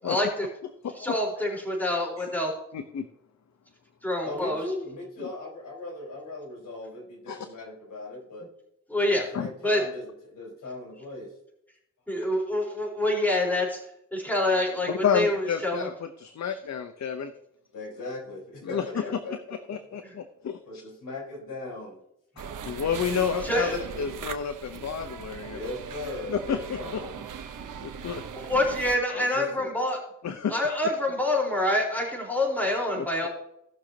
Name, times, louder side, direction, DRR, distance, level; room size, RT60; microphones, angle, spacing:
voice 1, 0.0-0.5 0.9-2.5 4.0-4.6 8.9-9.3 9.6-9.8 12.1-13.8 14.1-15.9 20.0-20.1 23.1-23.8 28.3-30.0 30.5-33.3, left 1 dB, 5° left, -3 dB, 4.2 m, -26 dB
voice 2, 0.8-1.2 2.7-3.0 7.3-7.4 9.3-9.5 15.0-17.3 18.7-18.8 19.7-20.8 22.4-23.7 24.0-25.6 26.3-26.6 27.8-28.2 30.2-30.5 32.9-33.3, left 7 dB, 60° left, 9 dB, 0.8 m, -30 dB
voice 3, 4.2-8.5 9.1-11.4 14.6-14.8 17.7-19.3 19.7-19.8 20.6-22.0 25.4-27.2 29.1-29.7, left 2 dB, 75° left, -2 dB, 4.6 m, -38 dB
sound 1, 22.4-29.0, right 7 dB, 75° right, 1.0 m, -39 dB
18.0 x 6.4 x 2.9 m, 0.78 s
cardioid pair, 75°, 32 cm